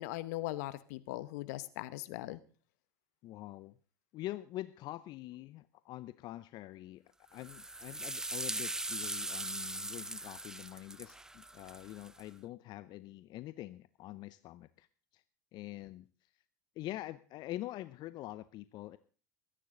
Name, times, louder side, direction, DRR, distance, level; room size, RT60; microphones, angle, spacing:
voice 1, 0.0-2.4, left 17 dB, 65° left, 15 dB, 1.1 m, -39 dB
voice 2, 3.2-3.8 4.1-7.0 7.3-14.9 15.1-15.2 15.5-16.3 16.8-19.0, left 15 dB, 50° left, 15 dB, 0.7 m, -45 dB
sound 1, 7.4-12.2, right 2 dB, 5° right, 0.6 m, -40 dB
23.0 x 10.0 x 3.9 m, 0.39 s
hypercardioid pair, 90°, 10 cm